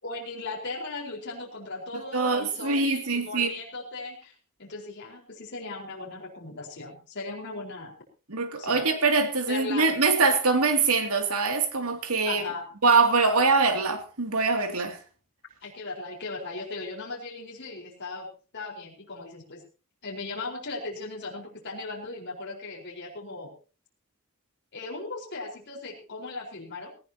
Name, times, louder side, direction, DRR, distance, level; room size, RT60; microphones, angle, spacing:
voice 1, 0.0-4.3 4.6-7.9 8.6-8.8 9.5-9.8 12.3-12.7 15.6-18.3 18.5-19.6 20.0-23.5 24.7-26.9, left 3 dB, 55° left, -2 dB, 4.5 m, -37 dB
voice 2, 2.1-3.5 8.3-12.4 12.8-15.0, right 4 dB, 90° right, 6 dB, 2.6 m, -23 dB
19.0 x 17.0 x 2.9 m, 0.35 s
head